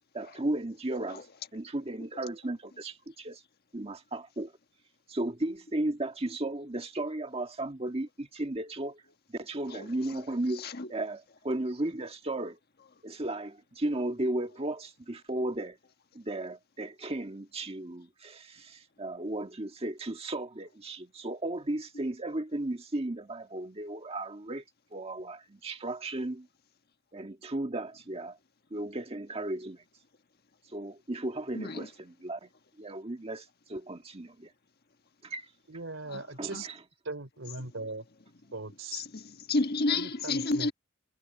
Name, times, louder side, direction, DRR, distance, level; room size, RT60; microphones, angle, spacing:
voice 1, 0.1-1.3 1.5-3.4 3.7-4.5 5.1-9.0 9.3-12.6 13.0-15.8 16.1-24.6 24.9-26.5 27.1-28.4 28.7-29.8 30.7-32.5 32.8-34.5 35.2-35.5 36.4-36.7, right 1 dB, 30° right, 1.7 m, -35 dB
voice 2, 9.7-10.2 10.5-10.9 21.9-22.0 31.5-31.9 36.1-36.2 36.5-36.6 38.9-40.7, left 3 dB, 55° left, 1.5 m, -31 dB
voice 3, 35.7-36.7 37.0-38.0 38.5-39.0 39.9-40.7, right 3 dB, 75° right, 3.3 m, -39 dB
head